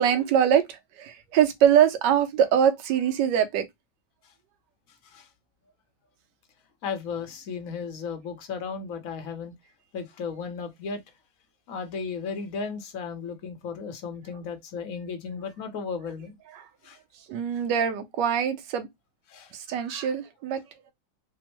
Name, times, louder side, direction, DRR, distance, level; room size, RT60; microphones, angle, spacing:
voice 1, 0.0-3.7 16.5-16.6 17.3-18.9 19.5-20.6, right 9 dB, 75° right, 1.3 m, -23 dB
voice 2, 6.8-9.5 9.9-11.0 11.7-16.4 16.8-17.0 19.3-19.5, left 5 dB, 60° left, 1.0 m, -35 dB
3.5 x 2.1 x 2.9 m
omnidirectional pair, 2.1 m